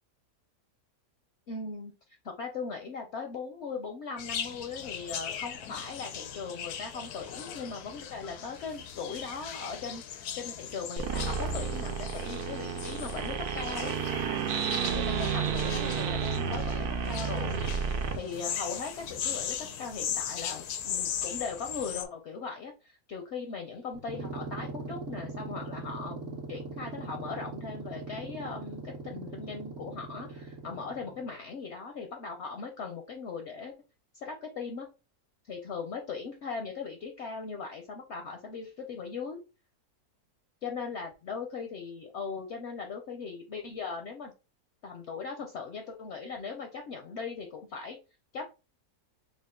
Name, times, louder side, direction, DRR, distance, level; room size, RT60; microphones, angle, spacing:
voice 1, 1.5-1.9 2.2-13.9 14.9-17.7 18.1-33.7 34.1-34.9 35.5-39.4 40.6-44.3 44.8-48.0 48.3-48.5, left 5 dB, 65° left, 4 dB, 0.7 m, -39 dB
sound 1, 4.2-22.0, left 8 dB, 85° left, 1.1 m, -39 dB
sound 2, 11.0-18.2, right 6 dB, 85° right, 1.1 m, -31 dB
sound 3, 23.9-31.3, right 3 dB, 60° right, 1.0 m, -41 dB
3.7 x 2.2 x 3.6 m, 0.31 s
omnidirectional pair, 1.6 m